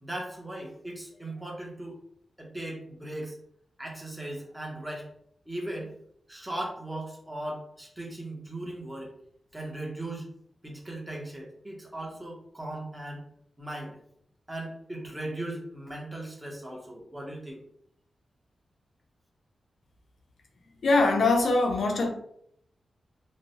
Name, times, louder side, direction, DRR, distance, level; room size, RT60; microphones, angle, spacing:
voice 1, 0.0-2.0 2.4-3.3 3.8-5.1 5.5-5.9 6.3-9.1 9.5-10.3 10.6-13.2 13.6-14.0 14.5-17.6, right 1 dB, 10° right, -1 dB, 0.7 m, -38 dB
voice 2, 20.8-22.1, left 3 dB, 70° left, 3 dB, 0.4 m, -22 dB
2.9 x 2.0 x 2.7 m, 0.68 s
wide cardioid pair, 115°, 0 cm